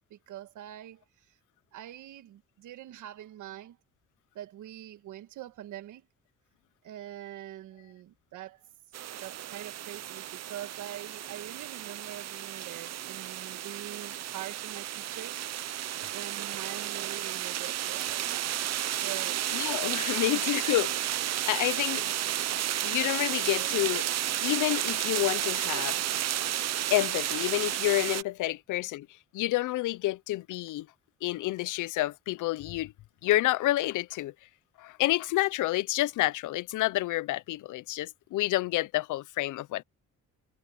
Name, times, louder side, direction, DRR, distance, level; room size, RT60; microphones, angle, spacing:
voice 1, 0.1-1.4 1.7-3.8 4.3-6.1 6.8-8.6 9.2-15.4 16.1-18.5 19.0-19.4 20.1-20.2 21.9-22.2 23.6-23.7 25.7-25.9 28.4-28.5, right 13 dB, 80° right, 1.5 m, -44 dB
sound 1, 8.9-28.2, right 12 dB, 60° right, 0.8 m, -32 dB
voice 2, 19.5-21.2 21.5-22.0 22.8-24.0 24.4-26.0 26.9-29.1 29.3-30.9 31.2-32.9 33.2-34.3 34.8-39.8, left 16 dB, 80° left, 0.7 m, -29 dB
cardioid pair, 90°, 30 cm